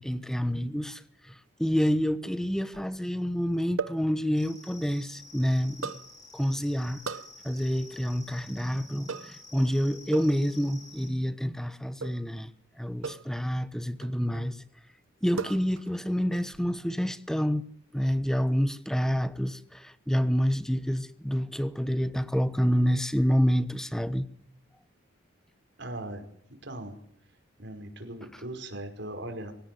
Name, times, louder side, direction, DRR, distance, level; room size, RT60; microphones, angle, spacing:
voice 1, 0.0-5.9 6.3-7.0 7.4-12.5 12.8-14.6 15.2-17.6 17.9-24.3, equal, ahead, 1.1 m, -28 dB
sound 1, 2.0-3.0 3.8-4.1 5.8-6.1 7.0-7.3 9.1-9.4 10.1-10.4 12.0-12.3 13.0-13.4 14.0-14.5 15.4-16.0 16.3-16.7, right 4 dB, 75° right, 1.1 m, -37 dB
sound 2, 4.3-11.1, left 3 dB, 20° left, 7.0 m, -50 dB
voice 2, 25.8-26.2 26.6-27.0 27.6-29.5, right 1 dB, 55° right, 5.2 m, -39 dB
24.5 x 17.5 x 9.4 m
head